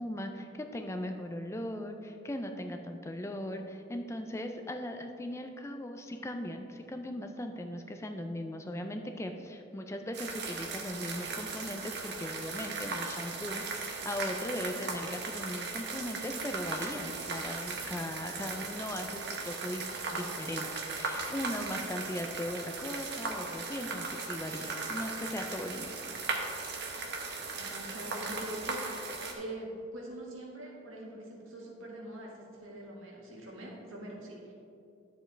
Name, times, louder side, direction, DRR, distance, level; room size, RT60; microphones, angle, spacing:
voice 1, 0.0-26.0, left 1 dB, 15° left, 5 dB, 0.4 m, -39 dB
sound 1, 10.1-29.3, right 4 dB, 55° right, 0.9 m, -38 dB
voice 2, 27.5-34.5, right 1 dB, 85° right, -2 dB, 1.8 m, -44 dB
10.0 x 7.2 x 3.3 m, 2.6 s
head